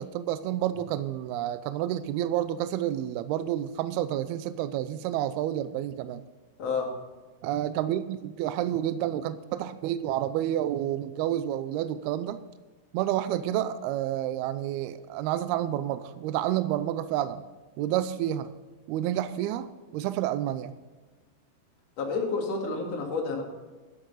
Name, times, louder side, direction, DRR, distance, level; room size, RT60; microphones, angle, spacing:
voice 1, 0.0-6.2 7.4-12.4 12.9-17.4 17.8-18.5 18.9-20.7, right 12 dB, 85° right, 13 dB, 2.3 m, -29 dB
voice 2, 6.6-6.9 22.0-23.4, left 4 dB, 45° left, 0 dB, 2.7 m, -29 dB
13.0 x 10.5 x 4.1 m, 1.3 s
omnidirectional pair, 5.0 m